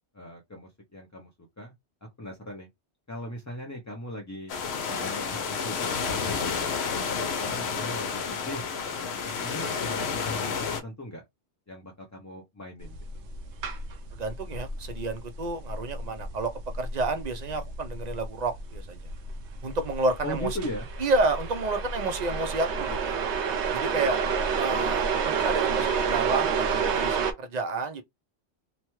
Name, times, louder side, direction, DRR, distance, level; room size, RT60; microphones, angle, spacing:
voice 1, 0.1-1.3 1.6-1.7 2.2-2.7 3.1-4.5 4.9-6.7 7.4-11.2 11.7-13.0 20.2-20.9, equal, 25° left, 0.4 m, -39 dB
sound 1, 4.5-10.8, left 5 dB, 70° left, 0.9 m, -30 dB
kettle A monaural kitchen, 12.8-27.3, right 5 dB, 85° right, 0.9 m, -30 dB
voice 2, 14.2-16.5 16.8-19.0 19.6-20.5 21.0-23.2 23.7-24.2 24.6-28.0, right 3 dB, 50° right, 0.6 m, -30 dB
2.9 x 2.2 x 2.9 m
omnidirectional pair, 1.2 m